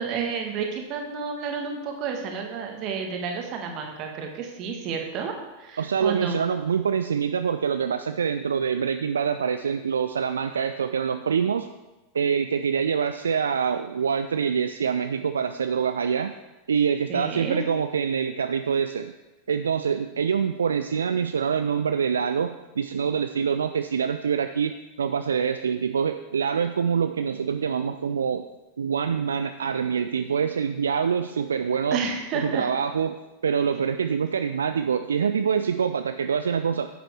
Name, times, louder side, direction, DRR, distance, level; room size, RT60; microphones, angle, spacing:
voice 1, 0.0-5.3 5.6-6.4 17.1-17.6 31.9-32.7, right 5 dB, 40° right, 2 dB, 1.5 m, -31 dB
voice 2, 5.8-11.7 12.1-16.3 16.7-19.1 19.5-24.7 25.0-28.4 28.8-32.0 32.4-33.2 33.4-36.9, right 7 dB, 70° right, 9 dB, 0.3 m, -25 dB
10.0 x 7.6 x 3.3 m, 1.1 s
figure-of-eight pair, 90°, 0 cm